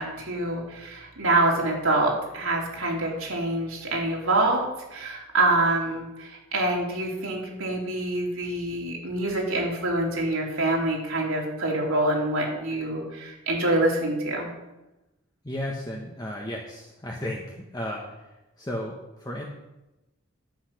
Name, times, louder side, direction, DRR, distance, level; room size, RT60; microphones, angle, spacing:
voice 1, 0.0-14.5, right 2 dB, 80° right, -2 dB, 3.2 m, -26 dB
voice 2, 15.4-19.4, left 1 dB, 20° left, -1 dB, 1.0 m, -34 dB
10.5 x 8.3 x 5.8 m, 1.0 s
head